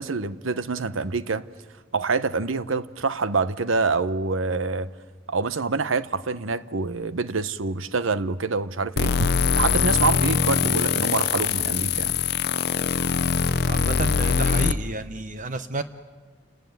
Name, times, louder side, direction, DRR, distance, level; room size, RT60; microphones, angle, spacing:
voice 1, 0.0-1.5 1.9-4.9 5.3-12.2, right 4 dB, 85° right, 0.9 m, -26 dB
sound 1, 9.0-14.7, left 6 dB, 55° left, 0.7 m, -22 dB
voice 2, 13.7-15.8, right 2 dB, 40° right, 0.9 m, -30 dB
29.0 x 19.0 x 9.4 m
head